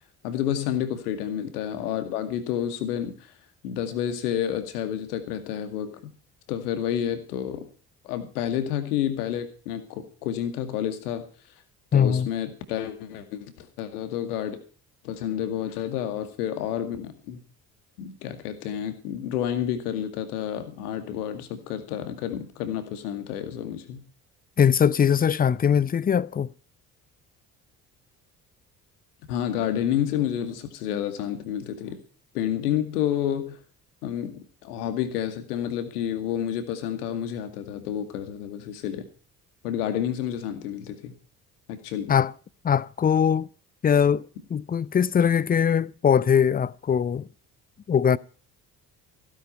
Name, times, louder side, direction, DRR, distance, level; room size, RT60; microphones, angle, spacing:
voice 1, 0.2-3.3 3.6-6.1 6.5-7.6 8.0-11.2 11.9-14.6 15.0-17.4 18.0-24.0 29.3-32.0 32.3-33.6 34.0-39.0 39.6-41.1 41.7-42.2, left 10 dB, 70° left, 2.2 m, -30 dB
voice 2, 11.9-12.3 24.6-26.5 42.1-42.3 42.6-43.5 43.8-44.3 44.5-47.3 47.9-48.2, left 8 dB, 20° left, 0.6 m, -21 dB
16.0 x 9.9 x 5.7 m
figure-of-eight pair, 50°, 47 cm